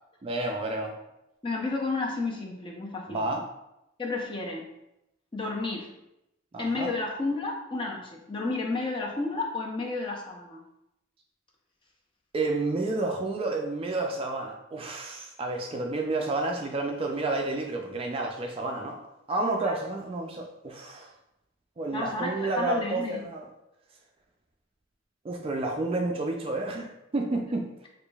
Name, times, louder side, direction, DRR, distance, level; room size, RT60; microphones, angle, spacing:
voice 1, 0.2-0.9 3.1-3.4 6.5-6.9 12.3-19.0 19.3-21.1 21.8-23.5 25.2-27.7, right 2 dB, 30° right, 2 dB, 0.3 m, -30 dB
voice 2, 1.4-3.4 4.0-4.6 5.3-5.9 6.6-10.6 19.6-19.8 21.9-23.3, left 3 dB, 25° left, 0 dB, 0.5 m, -31 dB
4.8 x 2.5 x 2.3 m, 0.87 s
head